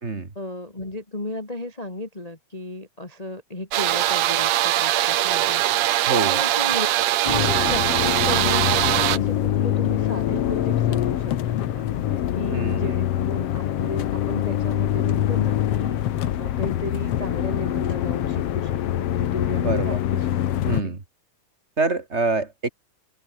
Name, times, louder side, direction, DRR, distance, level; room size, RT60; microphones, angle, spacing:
voice 1, 0.3-6.9 7.2-20.3 20.8-21.0, left 2 dB, 10° left, 2.7 m, -35 dB
sound 1, 3.7-9.2, right 14 dB, 75° right, 2.5 m, -21 dB
voice 2, 6.1-6.4 12.5-12.9 19.6-20.0 20.7-21.0 21.8-22.7, right 3 dB, 25° right, 2.3 m, -25 dB
sound 2, 7.3-20.8, left 11 dB, 60° left, 1.9 m, -24 dB
omnidirectional pair, 3.7 m